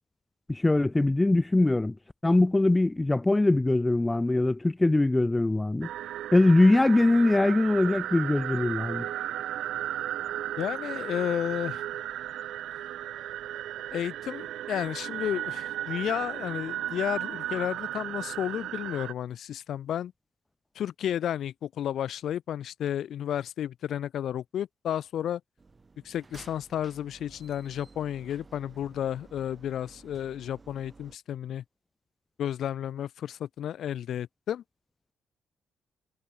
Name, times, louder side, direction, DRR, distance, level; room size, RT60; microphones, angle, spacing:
voice 1, 0.5-1.9 2.2-5.9 6.3-9.1, left 2 dB, 15° left, 0.5 m, -22 dB
sound 1, 5.8-19.1, right 12 dB, 80° right, 0.8 m, -35 dB
voice 2, 10.6-11.8 13.9-20.1 20.8-25.4 26.0-31.6 32.4-34.6, left 10 dB, 70° left, 0.7 m, -32 dB
sound 2, 25.6-31.2, right 3 dB, 25° right, 7.1 m, -53 dB
cardioid pair, 95°, 0 cm